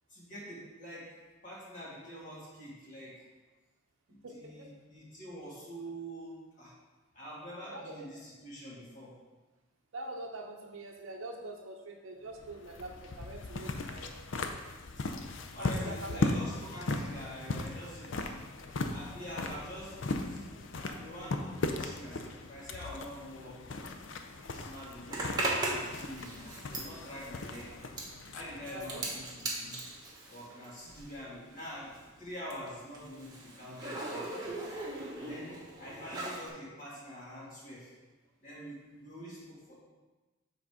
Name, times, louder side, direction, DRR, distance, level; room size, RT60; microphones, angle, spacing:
voice 1, 0.1-1.2 1.4-3.3 4.1-6.7 7.1-9.2 15.0-15.1 15.5-18.3 18.9-24.0 24.5-27.8 28.3-29.8 30.3-34.6 35.2-37.9 38.4-39.7, equal, 40° left, -7 dB, 2.3 m, -46 dB
voice 2, 4.2-4.7 7.7-7.9 9.9-14.1 15.6-16.3 28.7-29.0, right 2 dB, 75° right, 0 dB, 0.7 m, -44 dB
sound 1, 12.3-30.0, left 2 dB, 65° left, 0.5 m, -38 dB
Zipper (clothing), 25.1-31.3 31.5-36.5, right 2 dB, 20° right, 1.2 m, -39 dB
7.4 x 4.0 x 4.8 m, 1.2 s
head